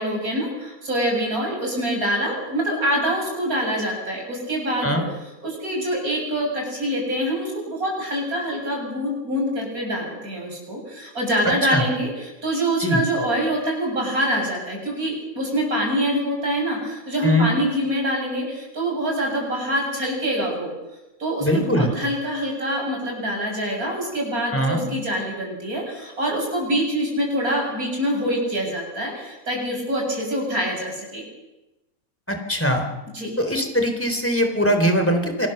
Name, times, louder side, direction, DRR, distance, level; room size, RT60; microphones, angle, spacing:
voice 1, 0.0-5.0 5.4-20.7 21.2-31.2 33.1-33.3, equal, 85° right, -1 dB, 8.1 m, -25 dB
voice 2, 21.4-21.9 24.5-24.8 32.3-32.9 33.4-35.5, equal, 10° left, 5 dB, 3.8 m, -21 dB
27.0 x 20.5 x 6.8 m, 0.98 s
omnidirectional pair, 1.5 m